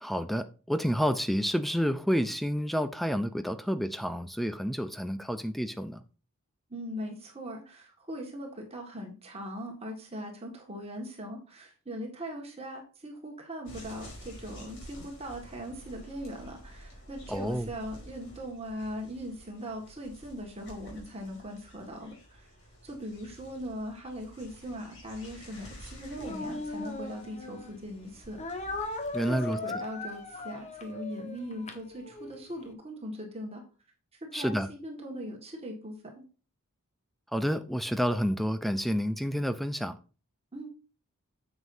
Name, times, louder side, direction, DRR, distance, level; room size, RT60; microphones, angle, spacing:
voice 1, 0.0-6.0 17.3-17.7 29.1-29.8 34.3-34.7 37.3-40.0, equal, ahead, 0.6 m, -29 dB
voice 2, 6.7-22.5 22.8-28.4 29.3-33.6 34.2-36.2 40.5-40.7, equal, 25° right, 1.8 m, -40 dB
sound 1, 13.7-29.4, equal, 55° left, 5.0 m, -50 dB
Speech, 26.2-27.7 28.4-32.4, left 2 dB, 30° left, 1.3 m, -38 dB
9.6 x 7.2 x 2.7 m
head